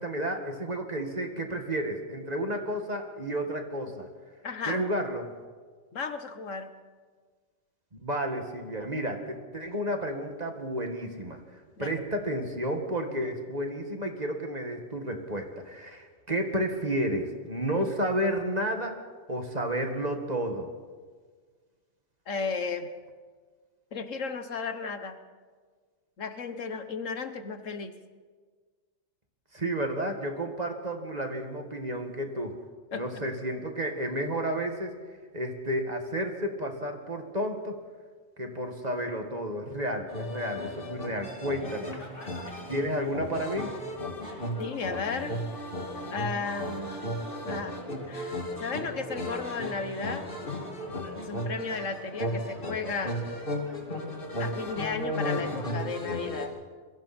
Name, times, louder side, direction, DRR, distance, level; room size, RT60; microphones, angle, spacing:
voice 1, 0.0-4.1 4.7-5.3 8.0-19.0 19.3-20.7 29.5-32.5 32.9-34.9 35.3-37.8 38.4-41.9 42.7-43.7, right 1 dB, 30° right, 4 dB, 2.0 m, -31 dB
voice 2, 4.4-4.8 5.9-6.7 11.8-11.9 22.3-22.9 23.9-25.2 26.2-27.9 32.9-33.1 44.6-45.3 46.1-47.0 47.4-47.7 48.1-50.3 51.2-53.2 54.4-56.5, left 4 dB, 65° left, 9 dB, 1.5 m, -34 dB
sound 1, 40.1-56.5, equal, 40° left, 2.8 m, -35 dB
27.5 x 22.0 x 4.4 m, 1.5 s
omnidirectional pair, 1.4 m